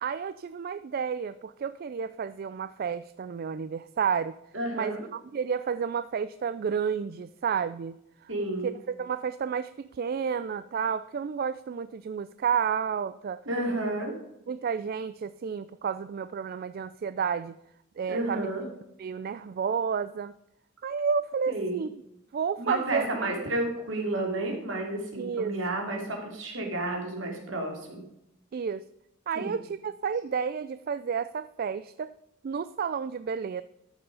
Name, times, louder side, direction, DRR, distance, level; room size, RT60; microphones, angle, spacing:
voice 1, 0.0-4.4 4.7-8.3 8.6-13.4 14.5-17.5 18.0-18.5 19.0-20.3 20.8-21.9 22.3-23.3 25.2-25.6 28.5-28.8 29.3-32.1 32.4-33.6, right 6 dB, 45° right, 14 dB, 0.3 m, -31 dB
voice 2, 4.5-5.0 8.3-8.7 13.5-14.1 18.1-18.6 21.5-21.8 22.6-28.0 29.3-29.5, right 2 dB, 65° right, 1 dB, 3.1 m, -31 dB
13.5 x 7.0 x 5.5 m, 0.85 s
head